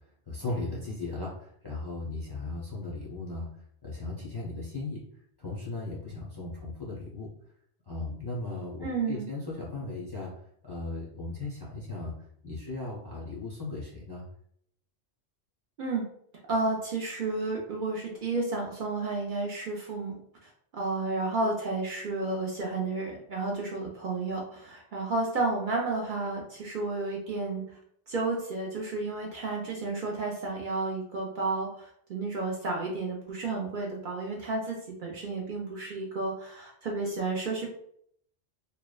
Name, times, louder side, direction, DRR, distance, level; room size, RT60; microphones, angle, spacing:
voice 1, 0.3-3.5 3.8-5.0 5.4-7.3 7.9-10.3 10.6-12.1 12.4-14.2, left 2 dB, 30° left, -5 dB, 0.4 m, -37 dB
voice 2, 8.8-9.3 15.8-16.1 16.5-20.1 20.4-27.6 28.1-37.7, right 3 dB, 55° right, -1 dB, 0.6 m, -32 dB
3.2 x 2.0 x 2.2 m, 0.68 s
omnidirectional pair, 1.1 m